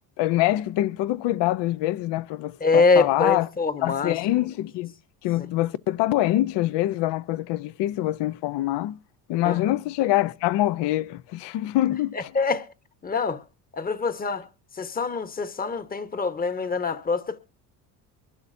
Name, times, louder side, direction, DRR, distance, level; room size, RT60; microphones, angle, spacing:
voice 1, 0.2-3.5 3.8-4.9 5.2-9.0 9.3-12.3, left 15 dB, 60° left, 0.8 m, -25 dB
voice 2, 2.6-4.2 9.4-9.6 12.1-12.7 13.0-13.4 13.7-14.4 14.8-17.4, left 4 dB, 20° left, 1.2 m, -24 dB
23.0 x 12.0 x 2.7 m
supercardioid pair, 85°, 47 cm